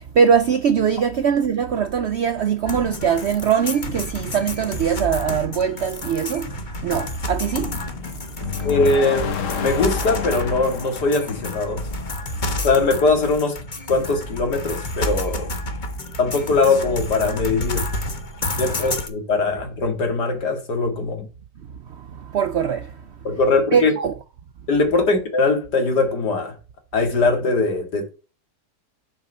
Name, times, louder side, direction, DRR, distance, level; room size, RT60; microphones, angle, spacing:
voice 1, 0.2-6.5 6.8-7.7 22.3-22.8 23.7-24.1, right 7 dB, 75° right, 0.6 m, -21 dB
sound 1, 2.6-19.1, left 2 dB, 30° left, 1.1 m, -30 dB
sound 2, 8.4-12.5, left 7 dB, 55° left, 1.2 m, -30 dB
voice 2, 8.6-11.8 12.6-13.6 13.9-15.5 16.2-17.9 18.6-21.3 23.2-23.9 24.7-26.5 26.9-28.1, left 3 dB, 85° left, 2.6 m, -21 dB
6.9 x 5.7 x 5.4 m
omnidirectional pair, 1.7 m